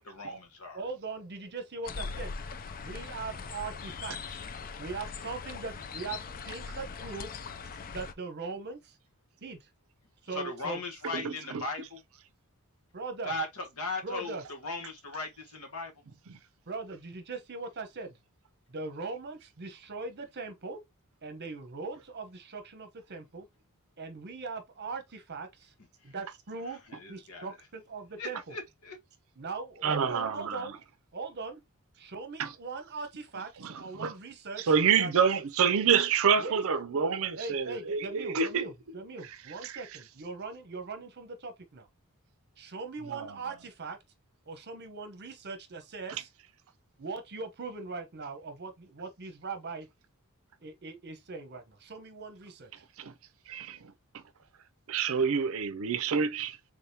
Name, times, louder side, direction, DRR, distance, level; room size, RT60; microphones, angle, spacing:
voice 1, 0.0-0.8 10.3-12.0 13.2-15.9 26.9-27.5 28.2-29.0, left 2 dB, 70° left, 1.2 m, -38 dB
voice 2, 0.7-2.3 2.8-4.4 4.8-7.4 7.9-9.0 9.4-9.7 10.2-10.8 12.9-13.3 14.0-14.4 16.7-18.2 18.7-20.8 21.2-23.5 24.0-25.7 26.0-26.8 27.1-28.6 29.4-30.8 31.1-31.6 32.0-35.1 36.4-36.6 37.4-41.9 42.6-44.0 44.5-46.3 47.0-49.9 50.6-52.8, right 4 dB, 50° right, 0.9 m, -40 dB
sound 1, 1.8-8.1, left 5 dB, 40° left, 0.4 m, -40 dB
voice 3, 11.1-11.6 29.8-30.7 32.4-32.5 33.6-34.1 34.7-38.6 39.6-39.7 43.1-43.3 53.0-53.1 53.5-53.9 54.9-56.6, right 6 dB, 65° right, 0.5 m, -27 dB
3.7 x 3.4 x 2.7 m
head